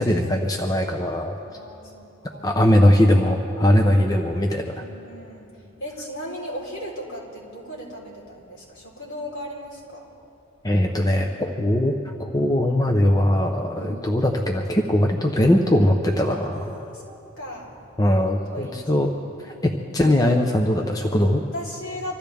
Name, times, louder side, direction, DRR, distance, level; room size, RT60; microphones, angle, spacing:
voice 1, 0.0-1.3 2.4-4.8 10.6-16.8 18.0-19.1 19.4-21.4, left 1 dB, 20° left, 2 dB, 0.8 m, -20 dB
voice 2, 1.4-2.0 2.3-2.6 4.7-5.5 5.8-10.1 13.8-14.1 16.2-16.4 16.9-17.8 18.5-19.1 21.5-22.2, equal, 65° left, -3 dB, 4.1 m, -36 dB
25.5 x 14.0 x 3.5 m, 2.7 s
head